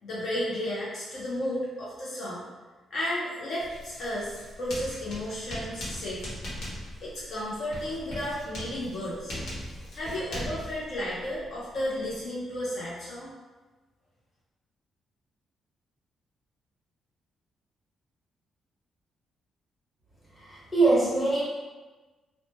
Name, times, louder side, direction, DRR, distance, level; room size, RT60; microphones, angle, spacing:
voice 1, 0.0-2.4 2.9-6.4 7.0-9.3 9.9-13.3, left 1 dB, 55° left, -7 dB, 0.5 m, -33 dB
Writing, 3.6-12.3, equal, 75° left, 1.1 m, -40 dB
voice 2, 20.5-21.4, right 3 dB, 15° left, -9 dB, 1.0 m, -22 dB
3.0 x 2.0 x 3.0 m, 1.3 s
cardioid pair, 160°, 0 cm